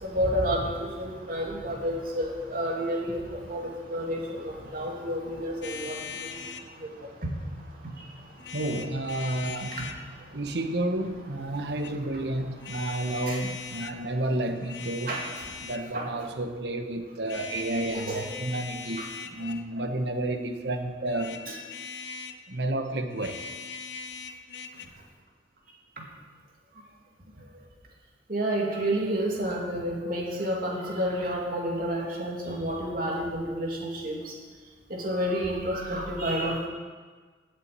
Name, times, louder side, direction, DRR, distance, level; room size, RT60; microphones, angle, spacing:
voice 1, 0.0-6.3 6.8-6.9 13.3-13.4 15.1-15.2 15.9-16.1 17.9-18.2 19.0-19.1 21.5-21.6 28.3-34.2 34.9-36.7, equal, 55° right, -2 dB, 2.4 m, -30 dB
sound 1, 5.6-6.7 8.4-10.0 11.5-11.9 12.6-14.0 14.5-15.9 17.2-19.7 21.0-22.4 23.1-24.9, left 5 dB, 85° left, 0.7 m, -40 dB
voice 2, 8.5-9.7 10.3-15.2 15.6-21.4 22.5-23.4 32.4-32.5, right 1 dB, 75° right, 6 dB, 1.1 m, -31 dB
8.1 x 8.0 x 8.2 m, 1.5 s
head